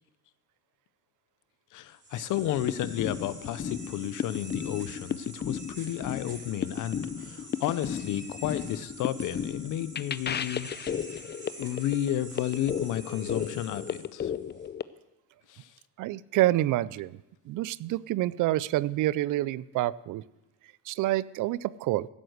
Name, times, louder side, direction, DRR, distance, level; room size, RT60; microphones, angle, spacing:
voice 1, 1.7-10.7 11.6-14.3 15.5-15.7, left 12 dB, 90° left, 15 dB, 0.7 m, -32 dB
sound 1, 1.8-14.7, right 2 dB, 35° right, 3.7 m, -47 dB
sound 2, 2.4-14.8, left 8 dB, 35° left, 0.6 m, -34 dB
voice 2, 16.0-17.1 17.5-20.2 20.9-22.1, right 15 dB, 85° right, 20 dB, 0.5 m, -27 dB
16.0 x 7.9 x 7.9 m, 1.0 s
cardioid pair, 90°, 30 cm